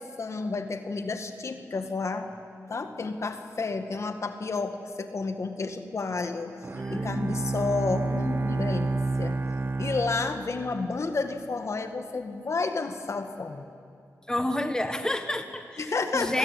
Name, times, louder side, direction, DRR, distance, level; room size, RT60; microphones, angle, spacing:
voice 1, 0.0-2.3 2.7-6.6 6.9-13.7 15.8-16.4, left 3 dB, 55° left, 7 dB, 2.0 m, -31 dB
Bowed string instrument, 6.6-11.1, right 3 dB, 40° right, 0.9 m, -30 dB
voice 2, 6.8-7.3 14.3-16.4, left 1 dB, 10° left, 7 dB, 1.5 m, -30 dB
27.5 x 21.0 x 9.8 m, 2.3 s
wide cardioid pair, 95°, 6 cm